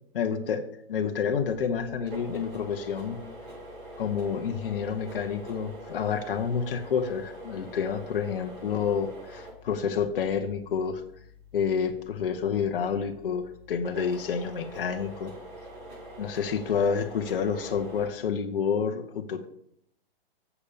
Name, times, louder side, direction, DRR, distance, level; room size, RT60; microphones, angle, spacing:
voice 1, 0.1-0.6 0.9-3.2 4.0-11.0 11.5-15.3 16.2-19.5, left 6 dB, 65° left, 6 dB, 1.1 m, -29 dB
sound 1, 1.3-18.1, right 1 dB, 25° right, 4.8 m, -45 dB
7.1 x 6.5 x 7.0 m, 0.71 s
hypercardioid pair, 145°, 30 cm